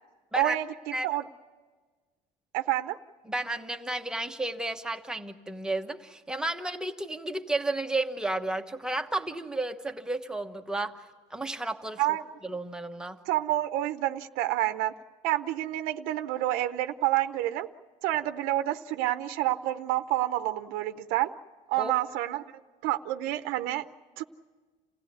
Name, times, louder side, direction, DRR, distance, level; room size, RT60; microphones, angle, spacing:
voice 1, 0.3-1.3 2.5-3.0 12.0-12.2 13.3-14.9 15.2-17.7 18.0-21.3 21.7-22.4 22.8-23.9 24.2-24.3, right 15 dB, 90° right, 9 dB, 0.8 m, -28 dB
voice 2, 3.3-12.0 12.4-13.2 21.8-21.9, right 2 dB, 5° right, 5 dB, 1.1 m, -32 dB
28.0 x 16.5 x 9.4 m, 1.4 s
cardioid pair, 135°, 15 cm